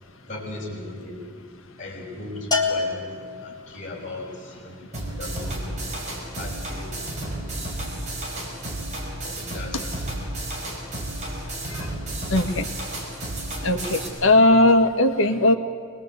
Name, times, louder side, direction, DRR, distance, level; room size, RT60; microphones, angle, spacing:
voice 1, 0.3-1.2 1.8-3.1 3.4-5.8 6.4-6.9 9.2-10.1, left 2 dB, 40° left, -5 dB, 5.0 m, -37 dB
Bell, 2.5-3.9, left 4 dB, 20° left, 2.4 m, -26 dB
sound 1, 4.9-14.1, right 1 dB, 35° right, 5.3 m, -32 dB
voice 2, 12.3-12.7 13.6-15.5, left 1 dB, 85° left, 6 dB, 1.7 m, -18 dB
23.5 x 21.0 x 8.2 m, 2.2 s
head